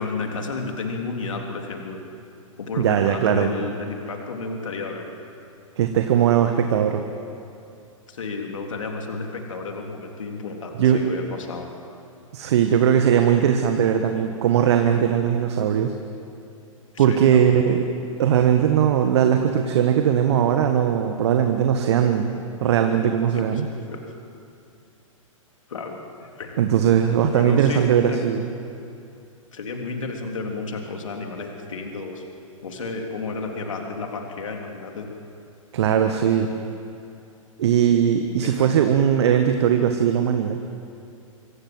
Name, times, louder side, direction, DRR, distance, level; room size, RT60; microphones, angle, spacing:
voice 1, 0.0-2.0 2.6-5.1 8.1-11.7 16.9-17.6 23.3-24.0 25.7-26.6 27.3-28.3 29.5-32.2 32.6-35.1 38.4-38.7, left 3 dB, 65° left, 2 dB, 3.5 m, -32 dB
voice 2, 2.8-3.5 5.8-7.0 10.8-11.0 12.3-15.9 17.0-17.8 18.2-22.3 22.6-23.6 26.6-28.4 35.7-36.5 37.6-40.6, right 9 dB, 50° right, 6 dB, 1.6 m, -19 dB
25.0 x 25.0 x 7.8 m, 2.6 s
figure-of-eight pair, 105°, 17 cm